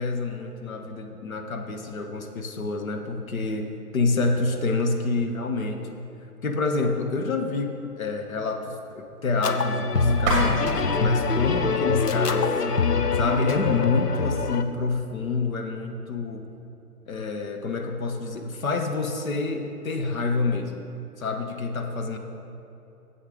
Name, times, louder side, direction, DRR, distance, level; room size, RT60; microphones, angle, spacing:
voice 1, 0.0-6.0 6.4-12.5 13.2-16.5 17.1-20.9 21.2-22.2, left 3 dB, 60° left, 4 dB, 1.2 m, -28 dB
sound 1, 9.4-14.6, left 4 dB, 90° left, 0.8 m, -24 dB
sound 2, 10.1-13.0, right 1 dB, 15° right, 2.4 m, -30 dB
9.9 x 7.8 x 4.9 m, 2.9 s
figure-of-eight pair, 140°, 46 cm